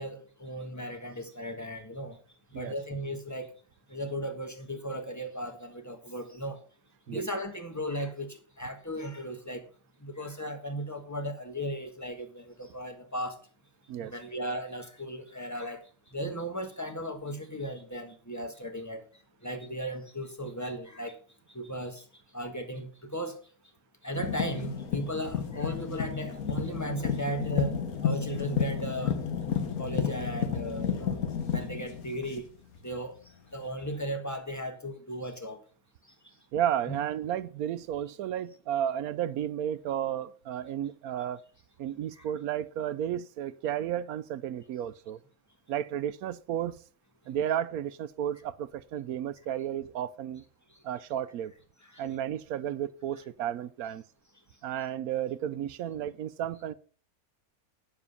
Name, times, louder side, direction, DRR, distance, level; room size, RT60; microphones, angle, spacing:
voice 1, 0.0-2.2 2.5-3.5 3.9-6.6 7.1-9.7 10.0-13.4 14.0-19.0 19.4-21.2 21.5-22.0 22.3-23.4 24.0-29.2 29.8-31.2 31.5-32.4 32.8-33.2 33.5-35.6 36.2-36.3 36.9-37.0 42.1-42.2 51.8-52.0, equal, 10° left, 1.3 m, -36 dB
sound 1, 24.1-33.0 33.8-33.9, left 7 dB, 75° left, 1.6 m, -32 dB
voice 2, 36.5-41.4 41.8-45.2 45.7-46.8 47.3-50.4 50.8-51.5 52.0-54.0 54.6-56.7, right 10 dB, 80° right, 1.1 m, -33 dB
9.7 x 7.2 x 5.5 m
omnidirectional pair, 1.5 m